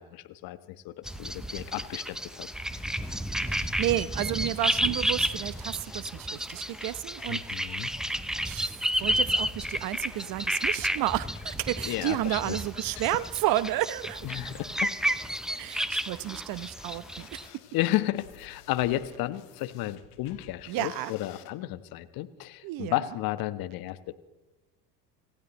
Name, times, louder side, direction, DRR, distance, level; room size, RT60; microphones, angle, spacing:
voice 1, 0.0-2.5 7.3-7.9 11.9-12.6 14.2-14.9 17.7-24.3, left 15 dB, 45° left, 12 dB, 1.2 m, -33 dB
sound 1, 1.1-17.5, equal, ahead, 0.6 m, -31 dB
sound 2, 2.7-21.5, left 11 dB, 65° left, 1.7 m, -54 dB
voice 2, 3.5-7.5 8.4-8.7 9.0-14.2 15.6-17.4 20.7-21.1 22.6-22.9, right 14 dB, 45° right, 17 dB, 0.9 m, -31 dB
27.5 x 16.0 x 3.1 m, 1.1 s
hypercardioid pair, 80°, 49 cm